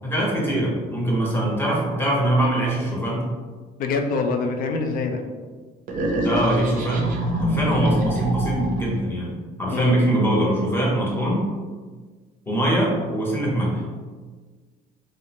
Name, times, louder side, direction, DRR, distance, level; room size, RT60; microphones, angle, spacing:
voice 1, 0.0-3.3 6.2-7.1 7.4-11.4 12.5-13.8, right 1 dB, 15° left, -4 dB, 0.8 m, -22 dB
voice 2, 3.8-5.2 9.7-10.0, left 4 dB, 60° left, 5 dB, 0.4 m, -25 dB
sound 1, 5.9-9.0, right 1 dB, 55° right, 0.5 m, -25 dB
2.4 x 2.0 x 2.8 m, 1.4 s
cardioid pair, 110°, 17 cm